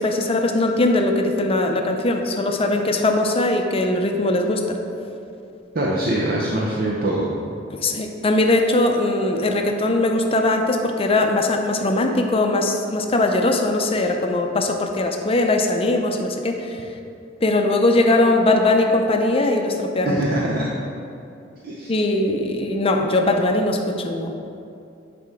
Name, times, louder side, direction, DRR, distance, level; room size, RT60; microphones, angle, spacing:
voice 1, 0.0-4.8 7.7-16.8 17.4-20.2 21.9-24.3, left 2 dB, 30° left, 3 dB, 0.5 m, -20 dB
voice 2, 5.7-7.3 20.0-20.7 21.6-21.9, right 1 dB, 55° right, -4 dB, 0.7 m, -23 dB
7.6 x 4.2 x 4.8 m, 2.6 s
head